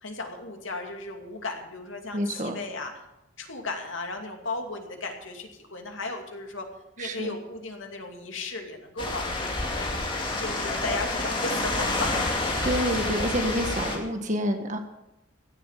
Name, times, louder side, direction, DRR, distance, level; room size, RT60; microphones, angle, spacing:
voice 1, 0.0-3.0 3.4-6.7 7.0-9.9 10.4-12.3, left 3 dB, 75° left, 3 dB, 2.6 m, -35 dB
voice 2, 2.1-2.6 7.0-7.3 12.6-14.8, equal, 40° right, 5 dB, 1.6 m, -28 dB
sound 1, 9.0-14.0, left 2 dB, 25° left, 2.4 m, -28 dB
16.0 x 11.5 x 5.8 m, 0.88 s
head